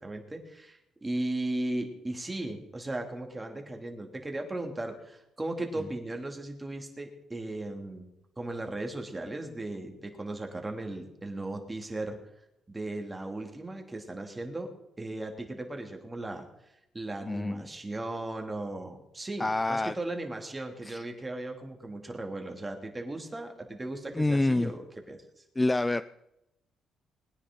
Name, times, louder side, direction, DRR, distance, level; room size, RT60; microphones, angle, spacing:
voice 1, 0.0-8.1 8.4-12.2 12.7-14.7 15.0-16.5 16.9-25.4, right 2 dB, 20° right, 3 dB, 2.6 m, -37 dB
voice 2, 17.2-17.6 19.4-19.9 20.8-21.0 24.1-24.7 25.6-26.0, left 2 dB, 15° left, 12 dB, 0.4 m, -27 dB
21.0 x 9.9 x 3.9 m, 0.85 s
cardioid pair, 90°, 0 cm